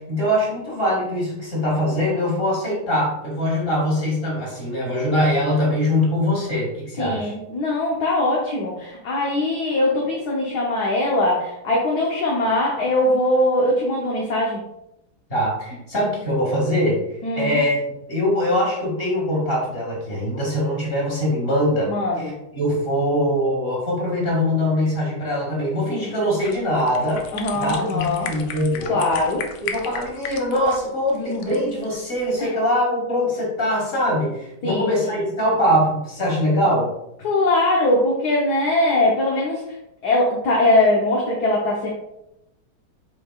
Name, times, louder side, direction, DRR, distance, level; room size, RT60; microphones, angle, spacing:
voice 1, 0.0-7.3 15.3-17.0 17.4-21.9 22.2-27.2 27.5-29.1 29.6-36.9, equal, 30° left, -4 dB, 2.3 m, -22 dB
voice 2, 7.0-14.6 17.2-17.6 21.9-22.4 27.3-28.3 28.9-29.4 32.4-32.6 34.6-34.9 37.2-39.6 40.0-41.9, left 1 dB, 60° left, -3 dB, 1.5 m, -21 dB
sound 1, 26.4-32.4, left 7 dB, 80° left, 1.4 m, -36 dB
7.6 x 5.1 x 2.4 m, 0.84 s
omnidirectional pair, 2.1 m